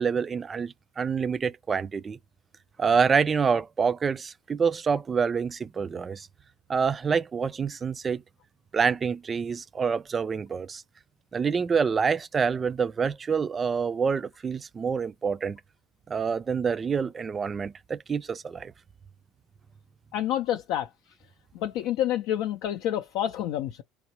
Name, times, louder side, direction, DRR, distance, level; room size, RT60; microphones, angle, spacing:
voice 1, 0.0-2.2 2.8-6.3 6.7-8.2 8.7-10.8 11.3-15.6 16.1-18.7, right 6 dB, 30° right, 0.4 m, -27 dB
voice 2, 20.1-20.9 21.5-23.8, left 11 dB, 70° left, 0.4 m, -28 dB
3.6 x 3.0 x 2.8 m
supercardioid pair, 85°, 0 cm